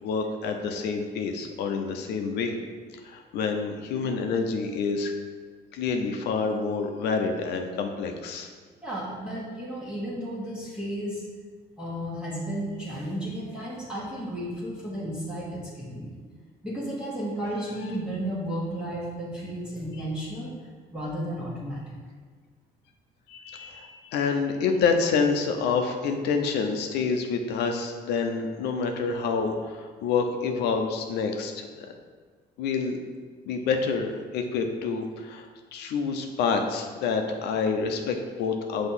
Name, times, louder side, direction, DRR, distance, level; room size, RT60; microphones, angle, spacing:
voice 1, 0.0-2.6 2.9-5.1 5.7-8.5 23.3-31.7 32.6-33.0 33.5-35.5 35.7-38.9, left 5 dB, 80° left, 4 dB, 0.7 m, -27 dB
voice 2, 8.8-11.2 11.8-16.2 16.6-20.5 20.9-22.0, right 1 dB, 5° right, -7 dB, 1.4 m, -33 dB
6.1 x 2.9 x 5.6 m, 1.5 s
cardioid pair, 110°, 17 cm